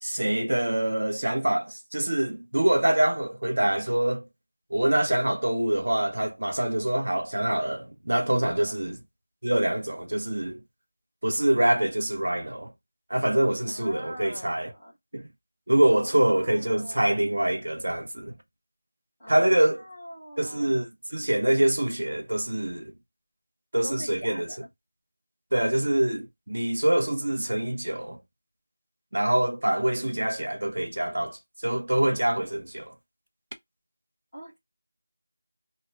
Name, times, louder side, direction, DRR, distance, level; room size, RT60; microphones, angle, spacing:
voice 1, 0.0-4.3 4.7-9.0 9.4-10.6 11.2-12.7 13.1-14.7 15.1-15.3 15.7-18.3 19.3-19.8 20.4-22.9 23.7-24.5 25.5-28.2 29.1-32.9, right 1 dB, 60° right, 0.7 m, -25 dB
voice 2, 8.4-8.8 13.7-15.0 15.9-17.2 19.2-20.9 23.8-24.7 34.3-34.6, equal, ahead, 0.9 m, -43 dB
2.3 x 2.0 x 3.3 m
figure-of-eight pair, 180°, 0 cm